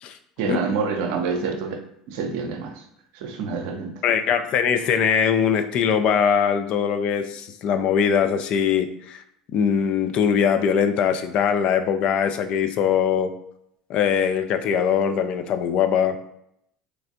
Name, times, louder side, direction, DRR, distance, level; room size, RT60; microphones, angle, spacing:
voice 1, 0.4-2.8 3.1-4.0, right 5 dB, 65° right, 5 dB, 0.5 m, -27 dB
voice 2, 4.0-9.2 9.5-13.3 13.9-16.3, left 7 dB, 50° left, 8 dB, 0.4 m, -21 dB
3.2 x 3.2 x 2.5 m, 0.76 s
hypercardioid pair, 70°, 2 cm